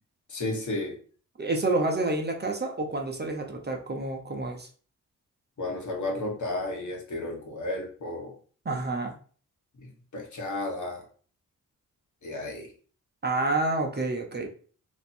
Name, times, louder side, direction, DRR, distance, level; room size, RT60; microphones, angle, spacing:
voice 1, 0.3-1.0 5.6-8.3 9.8-11.0 12.2-12.7, left 2 dB, 60° left, 0 dB, 1.3 m, -33 dB
voice 2, 1.4-4.7 8.6-9.1 13.2-14.5, right 2 dB, 30° right, 2 dB, 0.8 m, -28 dB
3.0 x 2.5 x 4.2 m, 0.42 s
cardioid pair, 70°, 34 cm